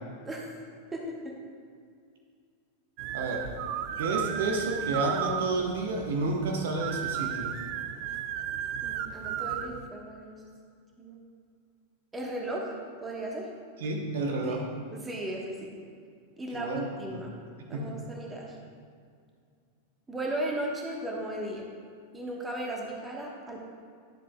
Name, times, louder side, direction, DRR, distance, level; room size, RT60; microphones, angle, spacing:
voice 1, 0.9-1.3 8.8-10.4 11.0-11.2 12.1-13.5 14.4-14.6 14.9-15.6 16.4-17.3 17.7-18.6 20.1-21.6 22.1-23.6, right 1 dB, 15° right, -1 dB, 1.2 m, -36 dB
sound 1, 3.0-9.9, right 9 dB, 45° right, 0.3 m, -34 dB
voice 2, 3.1-3.4 4.0-7.5 13.8-14.6 16.5-16.9 17.1-17.2 17.7-18.0, right 2 dB, 60° right, 1 dB, 0.9 m, -30 dB
10.5 x 7.3 x 2.3 m, 2.2 s
figure-of-eight pair, 90°, 0 cm